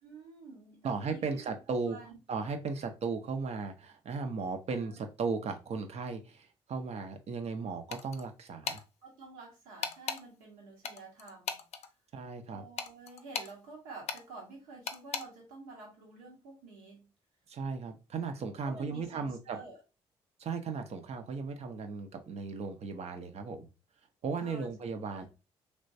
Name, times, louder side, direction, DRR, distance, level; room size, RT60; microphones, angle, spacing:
voice 1, 0.0-1.6 1.8-2.2 4.7-5.0 9.0-11.6 12.5-17.1 18.6-19.8 24.4-24.7 25.1-25.3, right 3 dB, 80° right, 1.2 m, -49 dB
voice 2, 0.8-2.0 2.3-8.8 12.1-12.7 17.5-19.6 20.4-23.7 24.2-25.3, right 4 dB, 55° right, 0.7 m, -36 dB
sound 1, 7.9-8.3 8.6-8.8 9.8-10.2 10.8-11.9 12.8-13.5 14.1-14.2 14.9-15.2, left 6 dB, 55° left, 0.5 m, -37 dB
3.3 x 3.0 x 2.6 m
hypercardioid pair, 50°, 13 cm